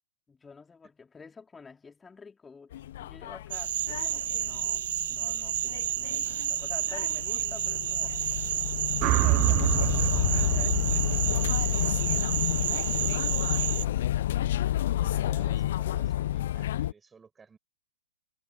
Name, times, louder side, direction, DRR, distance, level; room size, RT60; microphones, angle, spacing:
voice 1, 0.3-4.8 5.1-8.3 9.0-12.4 14.7-15.1, left 5 dB, 10° left, 4.3 m, -50 dB
sound 1, 2.7-16.9, left 13 dB, 50° left, 0.7 m, -30 dB
sound 2, 3.5-13.9, right 12 dB, 50° right, 1.2 m, -31 dB
sound 3, 9.0-13.2, right 22 dB, 30° right, 1.3 m, -29 dB
voice 2, 15.0-17.6, right 5 dB, 10° right, 6.8 m, -53 dB
figure-of-eight pair, 110°, 0 cm